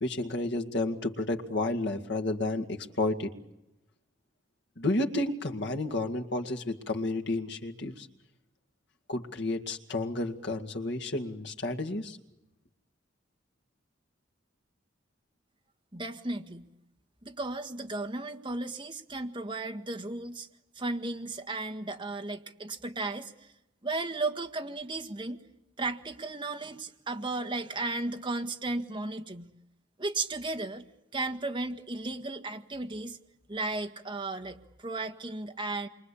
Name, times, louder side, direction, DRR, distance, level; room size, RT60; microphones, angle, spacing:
voice 1, 0.0-3.3 4.8-8.1 9.1-12.2, left 2 dB, 60° left, 3 dB, 2.1 m, -31 dB
voice 2, 15.9-16.7 17.2-20.5 20.8-23.5 23.8-25.4 25.8-29.5 30.0-30.8 31.1-33.2 33.5-35.9, right 2 dB, 25° right, 5 dB, 1.7 m, -35 dB
29.0 x 24.0 x 8.5 m, 0.90 s
head